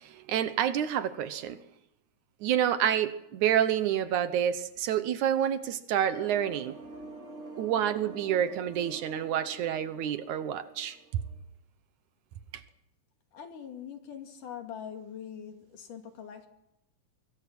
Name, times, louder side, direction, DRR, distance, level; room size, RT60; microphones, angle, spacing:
voice 1, 0.0-1.6 2.4-6.8 7.6-11.2, right 10 dB, 70° right, 2.3 m, -28 dB
sound 1, 6.1-11.4, right 2 dB, 25° right, 2.7 m, -47 dB
voice 2, 13.3-16.5, left 8 dB, 70° left, 3.9 m, -43 dB
25.0 x 22.5 x 6.1 m
omnidirectional pair, 3.8 m